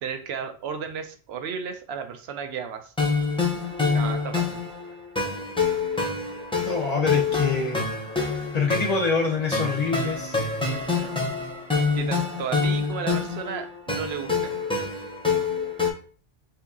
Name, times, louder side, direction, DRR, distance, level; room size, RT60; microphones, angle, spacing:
voice 1, 0.0-2.9 3.9-4.6 10.7-11.1 11.9-14.6, right 7 dB, 85° right, 7 dB, 0.8 m, -34 dB
sound 1, 3.0-15.9, left 4 dB, 5° left, 0.6 m, -26 dB
voice 2, 6.6-7.8 8.5-10.4, left 4 dB, 50° left, 3 dB, 0.6 m, -25 dB
2.8 x 2.7 x 3.5 m, 0.41 s
omnidirectional pair, 1.0 m